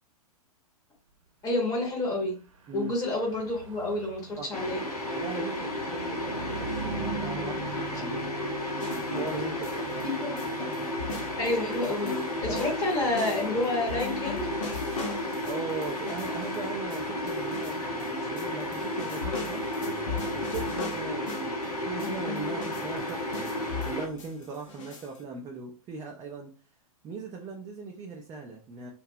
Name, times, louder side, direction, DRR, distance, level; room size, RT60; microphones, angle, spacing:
voice 1, 1.4-2.4 2.7-4.8 10.0-10.3 11.4-12.1 12.4-14.5, left 2 dB, 15° left, 0.8 m, -29 dB
Car passing by / Truck, 2.4-16.1, right 4 dB, 55° right, 0.7 m, -43 dB
sound 1, 4.5-24.1, left 1 dB, 85° left, 0.8 m, -33 dB
voice 2, 5.1-8.3 9.1-10.1 12.5-12.6 15.5-19.7 20.3-26.5 27.0-28.9, right 4 dB, 15° right, 0.3 m, -39 dB
sound 2, 8.8-10.1 10.4-18.1 18.4-21.6 22.0-25.2, left 4 dB, 55° left, 0.7 m, -38 dB
2.7 x 2.2 x 2.6 m
figure-of-eight pair, 105°, 19 cm